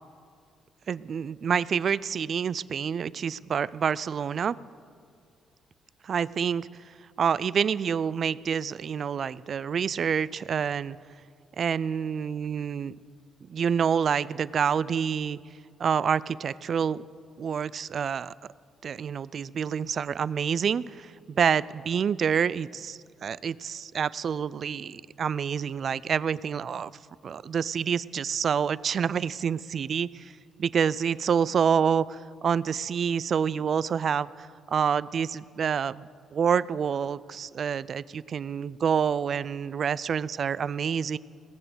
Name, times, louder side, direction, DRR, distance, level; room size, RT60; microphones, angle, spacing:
voice 1, 0.9-4.6 6.0-6.7 7.2-11.0 11.6-12.9 13.5-15.4 15.8-17.0 17.4-18.3 18.8-26.9 27.2-30.3 30.6-41.2, right 7 dB, 55° right, 20 dB, 0.3 m, -27 dB
18.0 x 7.0 x 8.0 m, 2.3 s
cardioid pair, 90°, 0 cm